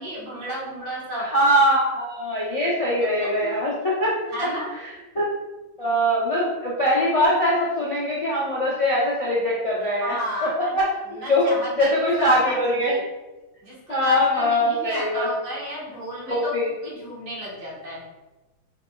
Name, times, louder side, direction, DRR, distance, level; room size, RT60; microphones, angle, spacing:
voice 1, 0.0-1.3 3.4-3.5 4.3-4.7 9.8-10.7 11.1-12.0 12.3-12.6 12.9-13.0 13.6-18.0, equal, 55° right, -6 dB, 1.9 m, -33 dB
voice 2, 1.2-5.3 5.8-10.2 10.4-10.9 11.3-11.5 11.8-13.1 13.9-15.3 16.3-16.7, equal, 60° left, -7 dB, 0.3 m, -22 dB
4.7 x 4.2 x 2.3 m, 1.1 s
omnidirectional pair, 2.4 m